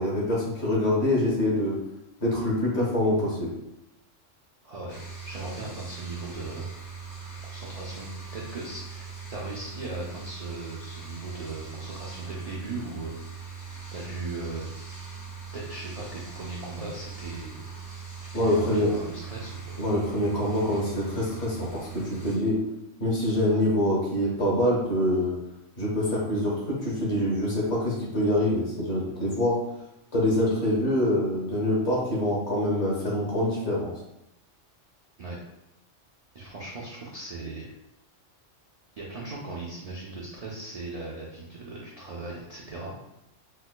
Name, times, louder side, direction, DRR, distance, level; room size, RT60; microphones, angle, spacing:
voice 1, 0.0-1.8 2.2-3.5 18.3-18.9 19.8-22.6 23.0-25.4 25.8-29.6 30.1-33.9, left 1 dB, 60° left, -5 dB, 1.4 m, -25 dB
voice 2, 4.6-6.7 7.5-13.5 13.9-14.7 15.5-17.6 18.2-19.8 23.5-23.6 35.2-35.4 36.3-37.7 39.0-42.9, right 2 dB, 65° right, -4 dB, 0.4 m, -38 dB
sound 1, 4.9-22.4, right 5 dB, 30° left, 0.3 m, -41 dB
4.7 x 2.1 x 2.2 m, 0.87 s
omnidirectional pair, 1.3 m